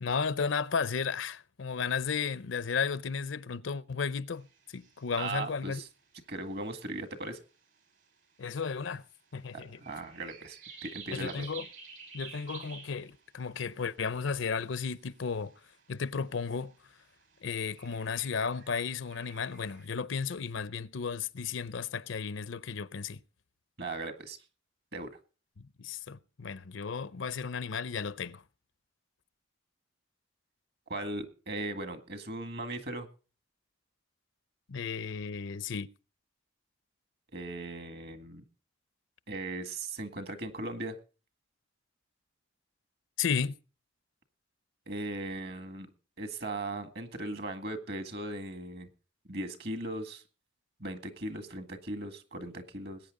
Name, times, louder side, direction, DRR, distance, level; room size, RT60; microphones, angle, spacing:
voice 1, 0.0-4.5 4.7-5.8 8.4-9.0 9.3-9.7 11.1-11.6 12.1-15.5 15.9-16.7 17.4-23.2 25.8-28.4 34.7-35.9 43.2-43.5, left 5 dB, 70° left, 0.6 m, -34 dB
sound 1, 4.3-19.9, right 6 dB, 70° right, 5.3 m, -52 dB
voice 2, 5.2-5.9 6.3-7.4 9.5-11.5 23.8-24.4 24.9-25.2 30.9-33.1 37.3-38.4 39.3-41.0 44.9-45.9 46.2-48.9 49.3-50.2 50.8-53.0, right 2 dB, 50° right, 1.9 m, -38 dB
20.5 x 9.1 x 3.7 m
head